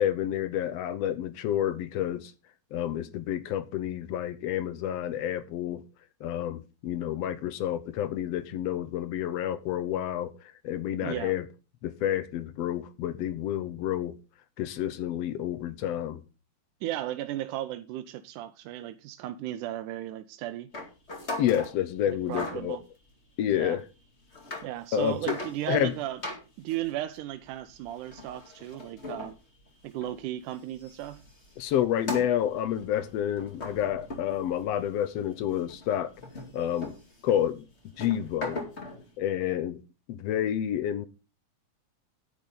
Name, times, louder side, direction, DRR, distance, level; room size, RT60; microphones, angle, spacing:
voice 1, 0.0-2.3 2.7-5.8 6.2-10.3 10.6-11.5 11.8-14.2 14.6-16.2 21.4-22.8 23.4-23.8 24.9-25.4 25.7-25.9 31.6-36.1 36.5-36.9 37.2-37.6 38.0-38.6 39.2-39.8 40.1-41.1, left 11 dB, 70° left, 1.6 m, -29 dB
voice 2, 11.0-11.3 16.8-20.7 22.1-22.8 23.5-23.8 24.6-26.2 26.6-29.4 29.8-31.2, right 13 dB, 85° right, 2.2 m, -35 dB
sound 1, 20.7-21.8 22.3-22.7 23.5-23.6 24.2-24.7 25.0-25.9 26.2-30.3 30.5-34.9 35.3-39.1, left 2 dB, 25° left, 2.1 m, -40 dB
9.7 x 9.5 x 3.8 m
omnidirectional pair, 3.5 m